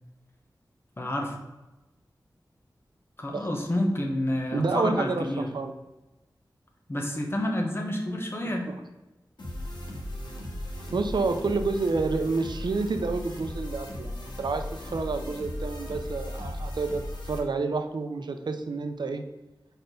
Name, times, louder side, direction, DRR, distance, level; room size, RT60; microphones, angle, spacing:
voice 1, 1.0-1.3 3.2-5.5 6.9-8.7, left 1 dB, 30° left, 2 dB, 1.1 m, -29 dB
voice 2, 4.5-5.7 10.9-17.0 17.3-19.2, right 3 dB, 80° right, 7 dB, 0.6 m, -29 dB
sound 1, 9.4-17.4, left 1 dB, 75° left, 1.3 m, -37 dB
4.5 x 4.4 x 5.2 m, 1.1 s
wide cardioid pair, 80°, 8 cm